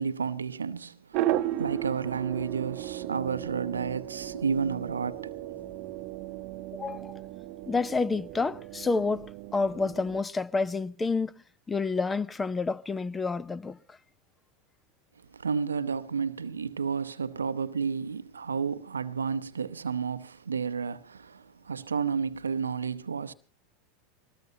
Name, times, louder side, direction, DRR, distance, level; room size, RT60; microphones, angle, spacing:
voice 1, 0.0-5.3 15.3-23.3, right 6 dB, 85° right, 0.7 m, -31 dB
sound 1, 1.1-10.2, right 14 dB, 55° right, 0.8 m, -35 dB
voice 2, 6.7-7.1 7.7-11.3 11.7-13.8, left 4 dB, 15° left, 0.7 m, -29 dB
22.0 x 19.5 x 2.8 m
figure-of-eight pair, 85°, 0 cm